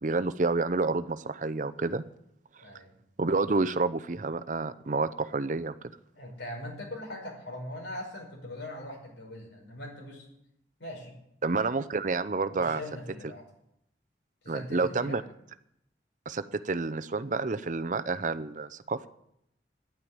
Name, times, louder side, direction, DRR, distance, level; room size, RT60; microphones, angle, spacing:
voice 1, 0.0-2.0 3.2-5.7 11.4-12.8 14.5-15.2 16.3-19.0, right 3 dB, 45° right, 12 dB, 0.6 m, -29 dB
voice 2, 2.6-2.9 6.1-10.2 10.8-11.1 12.6-13.4 14.4-15.2, left 1 dB, 90° left, 1 dB, 5.2 m, -41 dB
10.5 x 9.2 x 9.6 m, 0.77 s
head